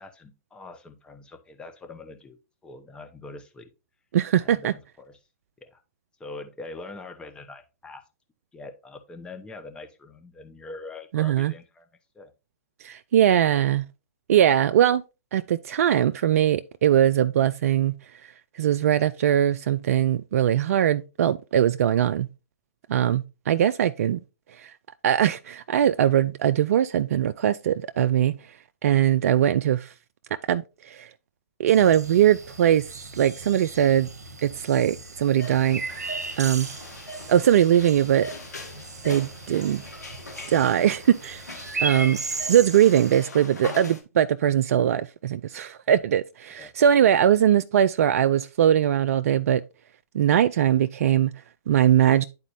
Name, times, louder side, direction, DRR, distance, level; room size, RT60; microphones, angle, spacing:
voice 1, 0.0-3.7 4.4-5.2 5.6-5.8 6.2-8.0 8.5-11.9 12.1-12.3 45.9-46.0 46.6-46.7, left 3 dB, 10° left, 0.9 m, -43 dB
voice 2, 4.1-4.7 11.1-11.5 12.8-13.8 14.3-15.0 15.3-17.9 18.6-22.3 22.9-24.2 24.6-24.7 25.0-28.3 28.8-29.9 30.5-31.1 31.6-32.8 33.2-34.1 34.4-35.8 36.4-36.7 37.3-38.3 39.0-39.8 40.5-41.4 41.8-42.2 42.5-49.6 50.1-51.3 51.7-52.2, right 10 dB, 65° right, 0.3 m, -21 dB
sound 1, 31.7-43.2, right 3 dB, 85° right, 0.9 m, -36 dB
sound 2, 35.4-44.0, left 1 dB, 85° left, 1.5 m, -41 dB
11.0 x 4.1 x 2.6 m
hypercardioid pair, 120°, 9 cm